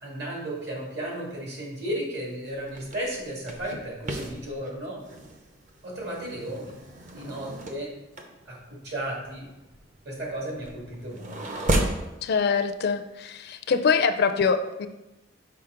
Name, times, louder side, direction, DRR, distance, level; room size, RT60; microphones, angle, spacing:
voice 1, 0.0-5.0 5.8-6.7 7.1-7.9 8.5-9.5 10.0-11.6, right 1 dB, 60° right, -3 dB, 2.0 m, -34 dB
sound 1, 2.4-12.1, right 1 dB, 40° right, 0.7 m, -34 dB
voice 2, 12.2-14.9, left 5 dB, 60° left, 9 dB, 0.4 m, -24 dB
5.8 x 5.0 x 3.8 m, 0.99 s
head